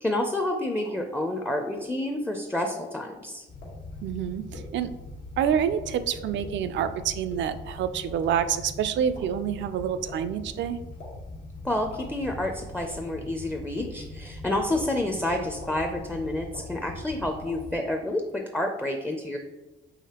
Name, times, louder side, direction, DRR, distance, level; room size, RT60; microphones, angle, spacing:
voice 1, 0.0-3.4 11.6-18.2 18.5-19.4, left 1 dB, 5° left, 3 dB, 0.4 m, -29 dB
sound 1, 0.8-0.9 1.8-1.9 2.7-2.8 3.6-3.7 4.5-4.6 5.5-5.6 6.4-6.5 7.3-7.4 8.2-8.3 9.1-9.2 10.1-10.2 11.0-11.1 11.9-12.0 12.8-12.9 13.8-13.9 14.7-14.8 15.6-15.7 16.5-16.6 17.5-17.6, left 3 dB, 90° left, 1.2 m, -43 dB
sound 2, 3.5-17.8, left 2 dB, 70° left, 1.2 m, -41 dB
voice 2, 4.0-4.9 5.4-10.8, right 8 dB, 65° right, 11 dB, 0.4 m, -27 dB
4.9 x 2.9 x 2.9 m, 1.1 s
cardioid pair, 90°, 20 cm